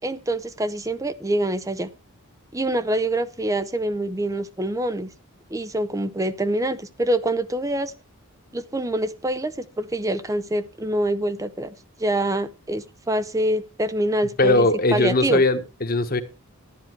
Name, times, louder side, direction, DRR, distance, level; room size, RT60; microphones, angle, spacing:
voice 1, 0.0-1.9 2.5-5.1 5.5-7.9 8.5-11.7 12.0-15.4, right 1 dB, 15° right, 0.6 m, -25 dB
voice 2, 14.4-16.2, left 2 dB, 45° left, 1.3 m, -20 dB
12.0 x 10.5 x 4.5 m
head